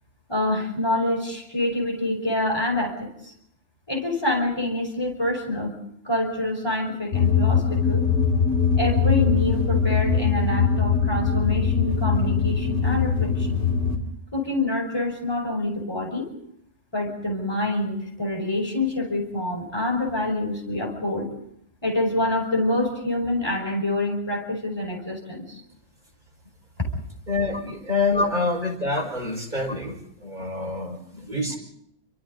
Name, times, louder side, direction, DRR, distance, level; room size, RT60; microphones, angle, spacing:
voice 1, 0.3-3.3 3.9-5.8 6.0-8.0 8.8-13.6 14.3-16.3 16.9-21.3 21.8-25.6 26.8-26.9 28.1-28.3, left 1 dB, 20° left, 1 dB, 5.1 m, -26 dB
sound 1, 7.1-14.0, left 6 dB, 65° left, 3.4 m, -22 dB
voice 2, 27.3-31.6, left 3 dB, 40° right, 0 dB, 5.6 m, -27 dB
29.5 x 25.0 x 3.9 m, 0.71 s
omnidirectional pair, 1.3 m